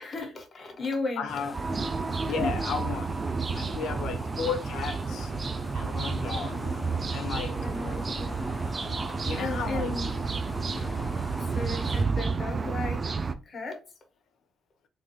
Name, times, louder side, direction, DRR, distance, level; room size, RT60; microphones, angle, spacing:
voice 1, 0.0-1.4 2.3-2.5 7.6-8.8 9.4-10.1 11.4-13.8, left 3 dB, 40° left, 1.3 m, -35 dB
voice 2, 1.2-1.5 2.3-3.2 3.5-5.3 5.7-6.7 7.1-7.5 9.3-10.2, left 6 dB, 75° left, 0.6 m, -34 dB
sound 1, 1.3-12.0, left 2 dB, 20° left, 0.5 m, -42 dB
sound 2, 1.5-13.3, right 4 dB, 35° right, 0.4 m, -31 dB
3.7 x 2.6 x 2.9 m
cardioid pair, 90°, 0 cm